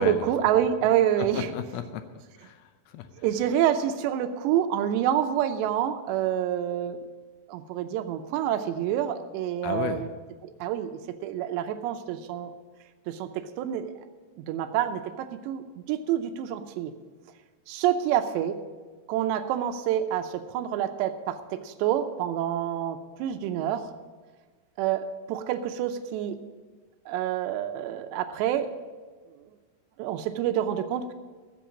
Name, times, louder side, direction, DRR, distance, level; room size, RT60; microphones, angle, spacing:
voice 1, 0.0-1.5 3.2-7.0 7.5-10.1 10.4-10.9 11.2-12.5 13.1-13.9 14.4-16.9 17.7-18.6 19.1-23.9 24.8-26.4 27.1-28.7 30.0-31.1, right 10 dB, 85° right, 8 dB, 3.0 m, -27 dB
voice 2, 1.2-3.1 9.6-10.0, left 9 dB, 80° left, 9 dB, 2.3 m, -34 dB
14.0 x 7.7 x 7.4 m, 1.4 s
omnidirectional pair, 4.9 m